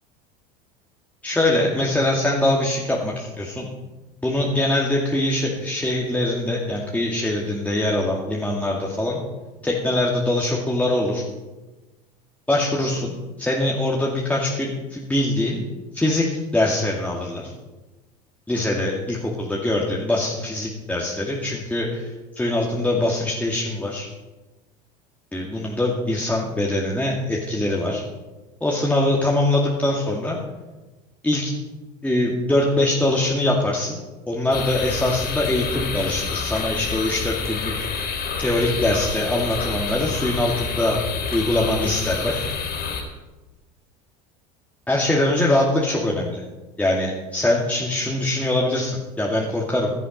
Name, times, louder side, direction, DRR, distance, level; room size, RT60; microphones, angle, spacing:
voice 1, 1.2-3.7 4.2-9.2 9.6-11.2 12.5-15.6 15.9-17.5 18.5-24.1 25.3-28.0 28.6-30.4 31.2-31.5 32.0-34.0 34.3-37.9 38.4-41.0 41.3-42.4 44.9-46.4 46.8-49.9, left 1 dB, 5° left, -3 dB, 2.3 m, -23 dB
sound 1, 34.5-43.0, left 5 dB, 50° left, 4.6 m, -28 dB
16.5 x 11.0 x 5.4 m, 1.2 s
supercardioid pair, 95°, 21 cm